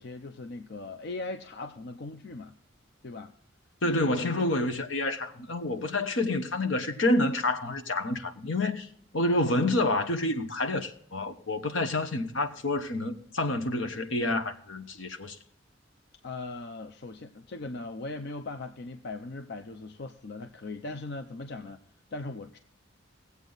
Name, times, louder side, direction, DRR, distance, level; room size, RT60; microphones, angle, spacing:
voice 1, 0.0-2.6 3.0-3.3 3.9-4.1 9.5-9.7 16.2-21.8 22.1-22.6, left 3 dB, 60° left, 0.6 m, -39 dB
voice 2, 3.8-8.9 9.1-15.4, left 2 dB, 80° left, 1.1 m, -28 dB
18.5 x 8.1 x 4.0 m
head